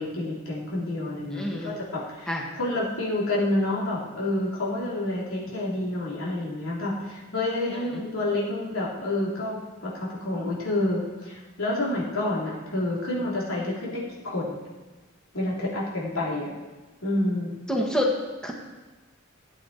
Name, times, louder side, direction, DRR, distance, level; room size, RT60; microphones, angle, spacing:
voice 1, 0.0-14.6 15.3-16.5 17.0-17.5, left 1 dB, 80° left, -5 dB, 3.4 m, -29 dB
voice 2, 1.3-1.7 2.3-2.4 7.9-8.0 17.7-18.2 18.4-18.5, left 1 dB, 5° left, -1 dB, 1.3 m, -26 dB
16.0 x 8.7 x 4.4 m, 1.2 s
head